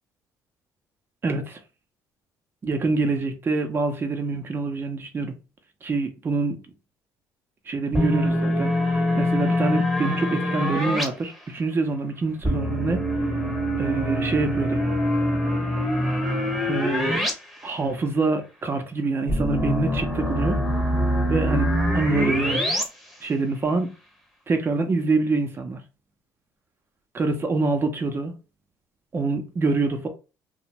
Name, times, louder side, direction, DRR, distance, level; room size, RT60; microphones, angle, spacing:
voice 1, 1.2-1.6 2.6-5.3 5.8-6.6 7.7-13.0 13.8-14.8 16.7-17.2 17.6-20.6 21.3-22.8 23.2-23.9 24.5-25.8 27.1-28.3 29.1-30.1, right 3 dB, 30° right, 0.7 m, -25 dB
sound 1, 7.9-11.0 12.4-17.3 17.6-17.7 19.3-22.8, equal, 5° right, 0.9 m, -24 dB
2.5 x 2.2 x 2.9 m
cardioid pair, 95°, 7 cm